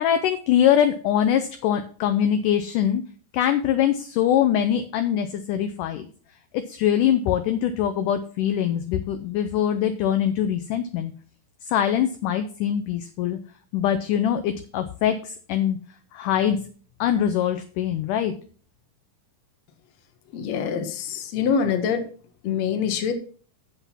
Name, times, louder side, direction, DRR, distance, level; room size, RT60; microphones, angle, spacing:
voice 1, 0.0-3.0 3.3-6.1 6.5-11.1 11.7-13.4 13.7-15.8 16.1-16.6 17.0-18.3, left 10 dB, 75° left, 8 dB, 2.1 m, -23 dB
voice 2, 20.3-22.0 22.4-23.1, left 6 dB, 60° left, 7 dB, 2.1 m, -25 dB
8.1 x 7.8 x 5.8 m, 0.43 s
omnidirectional pair, 4.1 m